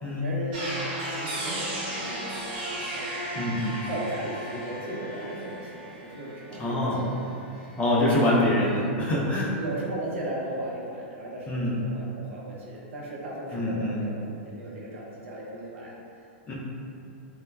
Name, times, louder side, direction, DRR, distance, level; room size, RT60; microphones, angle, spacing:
voice 1, 0.2-2.2 2.8-3.1 3.9-7.2 7.5-8.4 9.6-15.9, right 1 dB, 90° right, -4 dB, 0.6 m, -36 dB
sound 1, 0.5-7.7 7.9-8.8, right 1 dB, 45° right, 0.9 m, -37 dB
sound 2, 0.8-5.9, left 1 dB, 55° left, 0.9 m, -40 dB
voice 2, 3.3-3.9 6.6-7.0 7.8-9.5 11.5-11.8 13.5-14.0 16.5-16.6, left 1 dB, 20° left, -6 dB, 0.4 m, -25 dB
3.2 x 2.1 x 2.2 m, 2.6 s
supercardioid pair, 150°, 7 cm